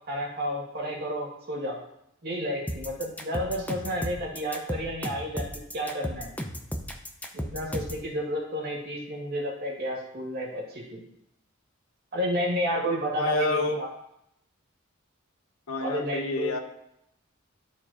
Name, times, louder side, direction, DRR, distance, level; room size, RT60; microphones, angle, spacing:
voice 1, 0.1-1.8 2.2-6.3 7.3-11.0 12.1-13.9 15.8-16.5, equal, 50° right, -2 dB, 2.0 m, -31 dB
sound 1, 2.7-8.0, equal, 5° left, 0.6 m, -34 dB
voice 2, 13.2-13.8 15.7-16.6, left 2 dB, 80° left, 6 dB, 0.8 m, -28 dB
12.5 x 4.3 x 2.9 m, 0.80 s
head